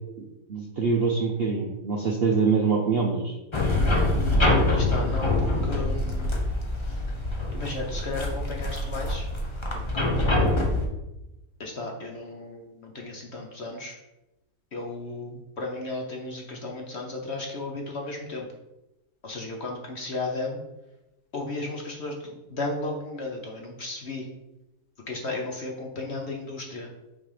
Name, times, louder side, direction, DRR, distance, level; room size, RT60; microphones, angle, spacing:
voice 1, 0.2-3.4, right 4 dB, 55° right, 0 dB, 0.7 m, -25 dB
sound 1, 3.5-10.9, left 2 dB, 25° left, 0.7 m, -25 dB
voice 2, 4.5-6.3 6.7-7.0 7.5-9.3 9.7-10.6 11.6-14.0 14.7-18.5 19.2-20.6 21.3-24.3 25.1-26.9, left 2 dB, 50° left, 1 dB, 0.9 m, -34 dB
6.1 x 4.3 x 4.9 m, 0.95 s
omnidirectional pair, 1.8 m